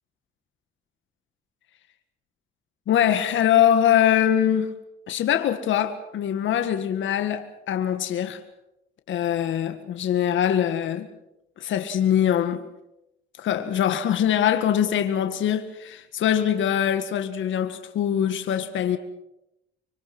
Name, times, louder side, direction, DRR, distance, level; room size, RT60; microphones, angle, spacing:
voice 1, 2.9-4.7 5.1-8.4 9.1-11.1 11.6-12.6 13.4-19.0, left 10 dB, 75° left, 1.9 m, -23 dB
25.0 x 24.5 x 6.2 m
cardioid pair, 90°, 20 cm